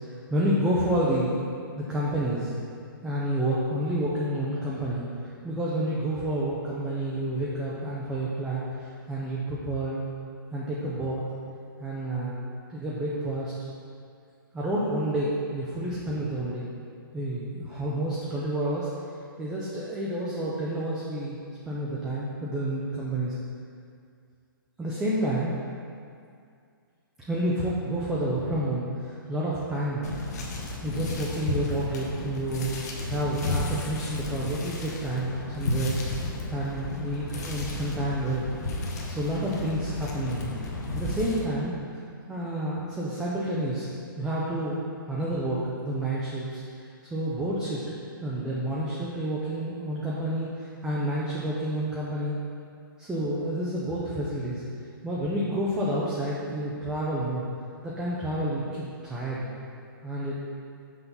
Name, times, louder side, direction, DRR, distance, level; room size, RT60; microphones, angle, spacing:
voice 1, 0.3-1.4 1.8-2.5 3.0-5.0 5.4-10.0 10.5-11.2 11.8-12.4 12.7-13.5 14.5-16.7 17.1-18.9 19.4-21.4 21.7-23.3 24.8-25.6 27.3-30.1 30.8-32.7 33.1-38.4 39.1-40.6 40.9-41.7 42.3-43.9 44.2-44.8 45.1-47.8 48.2-52.4 53.0-54.6 55.0-57.5 57.8-59.5 60.0-60.3, right 1 dB, 5° right, -7 dB, 0.4 m, -29 dB
sound 1, 30.0-41.4, left 2 dB, 45° left, 0.9 m, -33 dB
5.7 x 5.7 x 3.9 m, 2.3 s
hypercardioid pair, 165°, 12 cm